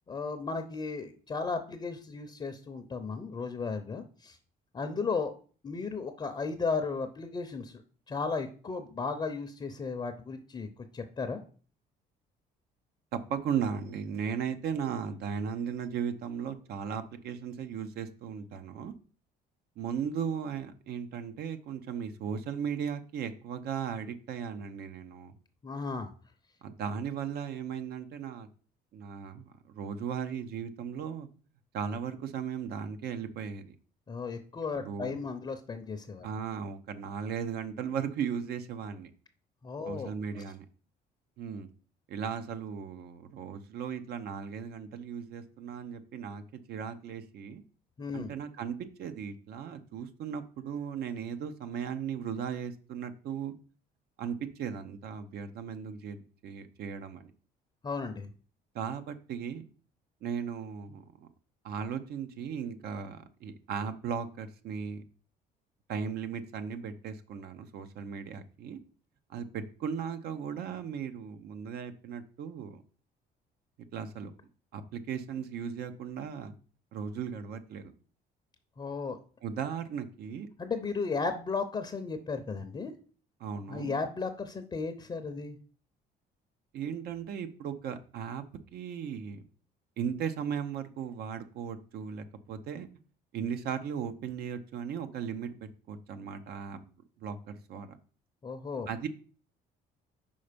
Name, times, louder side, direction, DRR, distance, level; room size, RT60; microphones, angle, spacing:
voice 1, 0.1-4.4 4.7-5.3 5.6-7.8 8.1-10.7 10.9-11.4 25.6-26.1 34.1-36.3 39.6-40.1 48.0-48.3 57.8-58.3 78.8-79.2 80.6-82.9 83.7-85.6 98.4-98.9, left 4 dB, 25° left, 7 dB, 0.6 m, -35 dB
voice 2, 13.1-18.9 19.8-25.3 26.6-28.5 28.9-31.3 31.7-33.8 34.8-35.2 36.2-39.1 39.8-40.6 41.4-41.7 42.1-47.6 48.1-53.5 54.2-57.3 58.7-59.6 60.2-61.3 61.6-65.0 65.9-68.8 69.3-72.8 73.9-74.3 74.7-76.5 76.9-77.9 79.4-80.5 83.4-83.9 86.7-88.4 88.7-89.4 90.0-92.9 93.3-96.9 97.2-98.0 98.9-99.1, right 7 dB, 70° right, 9 dB, 0.8 m, -37 dB
5.5 x 4.4 x 5.1 m, 0.41 s
cardioid pair, 110°, 17 cm